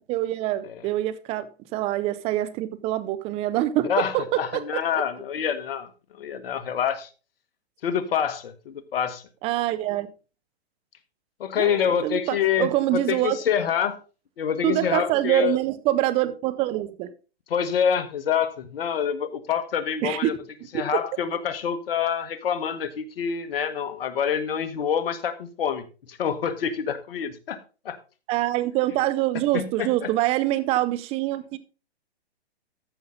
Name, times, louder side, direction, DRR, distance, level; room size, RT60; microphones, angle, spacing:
voice 1, 0.1-1.5 1.7-5.0 9.4-10.1 11.6-13.4 14.6-17.1 20.0-20.4 28.3-31.6, right 15 dB, 20° right, 0.6 m, -25 dB
voice 2, 3.8-5.9 6.1-7.1 7.8-9.2 11.4-14.0 14.4-15.6 17.5-20.3 20.7-27.6 27.8-28.0 29.5-30.1, left 8 dB, 60° left, 1.4 m, -26 dB
14.0 x 5.5 x 3.8 m
hypercardioid pair, 135°, 32 cm